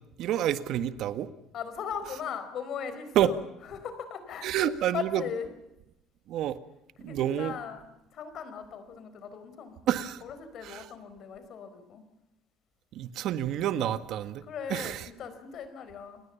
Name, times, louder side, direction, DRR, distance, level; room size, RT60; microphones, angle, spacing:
voice 1, 0.2-1.3 3.1-3.3 4.4-5.2 6.3-6.6 7.0-7.5 9.9-10.2 10.6-10.8 12.9-14.4 14.7-15.0, right 11 dB, 65° right, 12 dB, 1.7 m, -28 dB
voice 2, 1.5-3.4 3.7-4.5 4.9-5.5 7.0-7.9 8.1-9.8 10.2-12.0 14.4-16.2, left 7 dB, 55° left, 10 dB, 4.7 m, -38 dB
29.0 x 20.0 x 7.2 m, 0.88 s
supercardioid pair, 95°, 0 cm